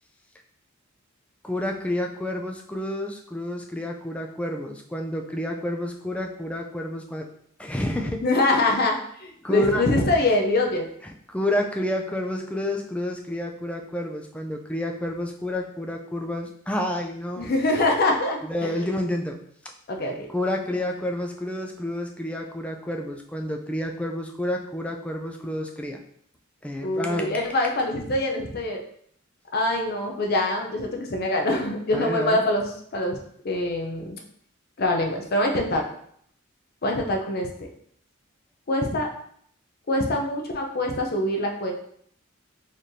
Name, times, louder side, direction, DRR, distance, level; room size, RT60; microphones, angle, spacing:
voice 1, 1.4-7.3 7.6-8.3 9.4-9.8 11.3-17.5 18.4-19.4 20.3-26.0 26.6-27.4 31.9-32.4, left 1 dB, 5° left, 2 dB, 0.3 m, -29 dB
voice 2, 8.2-10.9 17.4-18.7 19.9-20.3 26.8-28.8 29.5-33.2 33.4-34.2 34.8-35.9 36.8-37.7 38.7-39.1 39.9-41.7, left 2 dB, 50° left, 1 dB, 0.6 m, -24 dB
4.1 x 3.1 x 2.6 m, 0.65 s
head